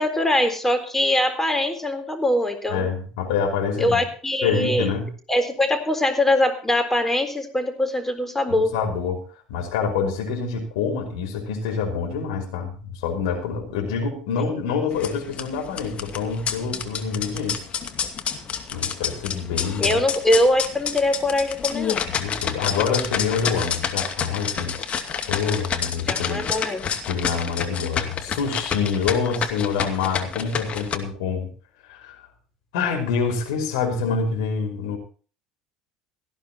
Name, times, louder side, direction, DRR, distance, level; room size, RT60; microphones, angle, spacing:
voice 1, 0.0-2.9 3.8-4.9 5.3-8.7 19.8-22.0 26.0-26.8, left 1 dB, 10° left, 6 dB, 3.9 m, -22 dB
voice 2, 2.7-4.1 4.4-5.1 8.7-9.2 9.5-17.6 18.7-20.0 22.1-24.8 25.3-26.4 27.1-31.5 31.9-32.2 32.7-35.0, left 5 dB, 70° left, 3 dB, 5.3 m, -26 dB
sound 1, 14.9-30.9, left 7 dB, 40° left, 2.5 m, -29 dB
18.0 x 14.5 x 3.0 m, 0.39 s
hypercardioid pair, 65°, 3 cm